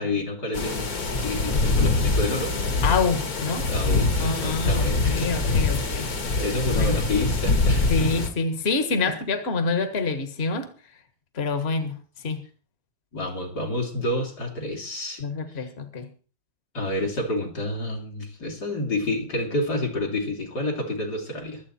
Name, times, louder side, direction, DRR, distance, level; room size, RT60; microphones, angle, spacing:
voice 1, 0.0-2.8 3.7-5.3 5.7-6.0 6.3-8.1 13.1-15.2 15.5-15.7 16.7-21.6, left 1 dB, 85° left, 3.9 m, -29 dB
sound 1, 0.5-8.3, left 3 dB, 65° left, 2.5 m, -24 dB
voice 2, 2.8-3.7 4.2-6.1 6.8-6.9 7.9-10.7 11.3-12.4 15.2-16.1, left 4 dB, 40° left, 1.7 m, -27 dB
23.5 x 8.4 x 4.3 m
omnidirectional pair, 1.7 m